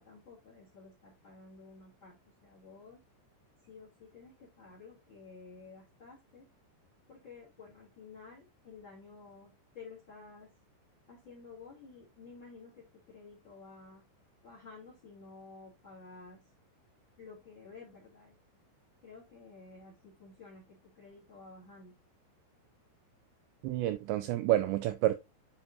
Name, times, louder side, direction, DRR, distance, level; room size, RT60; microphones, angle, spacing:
voice 1, 0.0-3.0 3.6-6.5 7.1-10.5 11.1-14.1 14.4-16.4 17.2-18.4 19.0-22.0, left 4 dB, 30° left, 3.3 m, -52 dB
voice 2, 23.6-25.1, right 14 dB, 90° right, 2.5 m, -29 dB
9.8 x 5.3 x 2.8 m
omnidirectional pair, 5.7 m